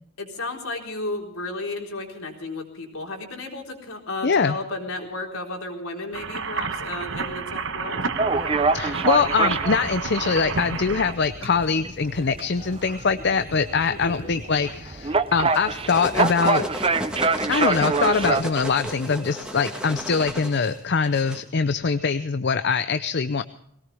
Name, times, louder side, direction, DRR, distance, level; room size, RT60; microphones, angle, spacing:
voice 1, 0.2-8.0 13.9-14.4, left 2 dB, 70° left, 1 dB, 4.0 m, -33 dB
voice 2, 4.2-4.6 8.7-16.6 17.4-23.4, left 5 dB, 50° left, 11 dB, 0.6 m, -23 dB
sound 1, 6.1-11.1, right 5 dB, 60° right, 1.2 m, -30 dB
sound 2, 8.2-18.4, right 4 dB, 25° right, 0.6 m, -26 dB
sound 3, 15.5-21.4, equal, 5° right, 1.8 m, -33 dB
21.0 x 18.0 x 3.4 m, 0.72 s
head